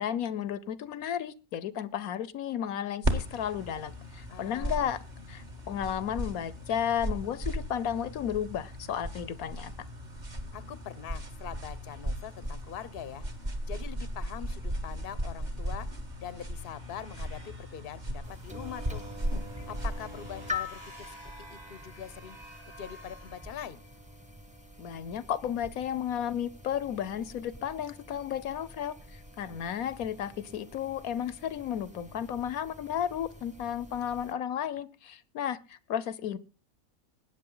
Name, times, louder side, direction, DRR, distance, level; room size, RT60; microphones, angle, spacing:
voice 1, 0.0-5.0 5.3-9.7 24.8-36.4, left 9 dB, 80° left, 18 dB, 1.3 m, -33 dB
sound 1, 3.0-20.6, equal, 30° right, 1.8 m, -37 dB
voice 2, 4.3-4.9 10.5-13.2 13.7-15.9 16.2-19.1 19.7-22.4 22.7-23.8, left 9 dB, 45° left, 17 dB, 1.0 m, -43 dB
sound 2, 15.9-24.2, right 1 dB, 50° right, 5.6 m, -53 dB
sound 3, 18.2-34.3, left 3 dB, 5° right, 1.3 m, -45 dB
20.0 x 9.2 x 3.9 m, 0.30 s
omnidirectional pair, 1.5 m